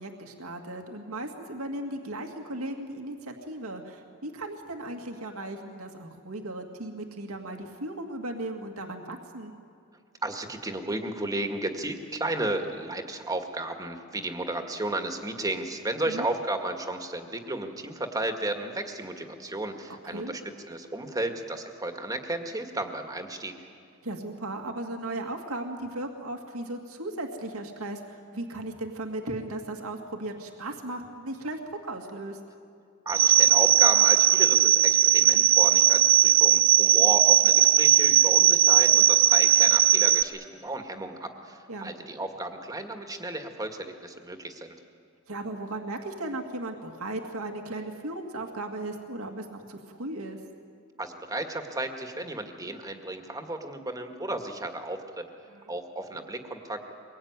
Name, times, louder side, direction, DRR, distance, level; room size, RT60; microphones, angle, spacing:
voice 1, 0.0-9.5 16.1-16.3 20.1-20.4 24.0-32.4 36.8-37.0 41.7-41.9 45.3-50.4 55.5-55.7, right 1 dB, 85° right, 3 dB, 2.2 m, -36 dB
voice 2, 10.2-20.4 20.7-23.5 33.1-44.7 51.0-55.3 55.7-56.9, right 2 dB, 15° right, 5 dB, 1.9 m, -33 dB
sound 1, 33.1-40.2, right 12 dB, 45° right, 0.6 m, -19 dB
24.0 x 22.0 x 9.6 m, 2.4 s
head